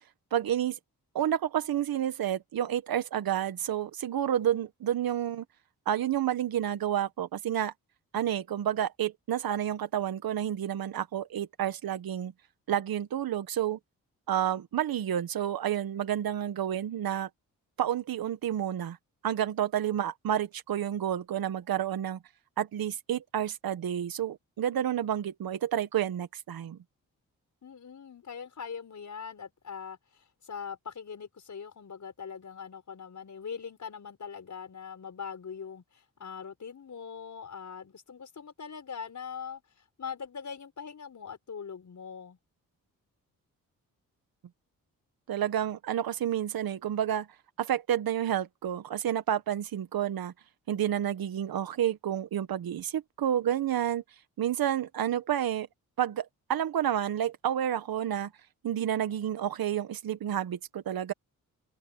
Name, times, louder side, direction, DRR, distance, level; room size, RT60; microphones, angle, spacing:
voice 1, 0.3-0.8 1.1-5.4 5.8-7.7 8.1-12.3 12.7-13.8 14.3-17.3 17.8-19.0 19.2-22.2 22.6-26.8 45.3-47.3 47.6-50.3 50.7-54.0 54.4-55.7 56.0-58.3 58.6-61.1, right 10 dB, 75° right, 1.7 m, -30 dB
voice 2, 27.6-39.6 40.0-42.4, left 6 dB, 55° left, 6.1 m, -42 dB
cardioid pair, 65°, 35 cm